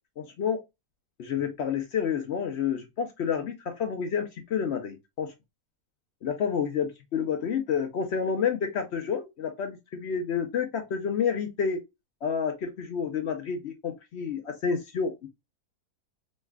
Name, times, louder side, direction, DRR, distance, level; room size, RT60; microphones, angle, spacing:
voice 1, 0.2-0.6 1.2-5.3 6.2-11.8 12.2-15.3, left 7 dB, 65° left, 0.6 m, -29 dB
3.1 x 2.3 x 3.3 m
omnidirectional pair, 1.6 m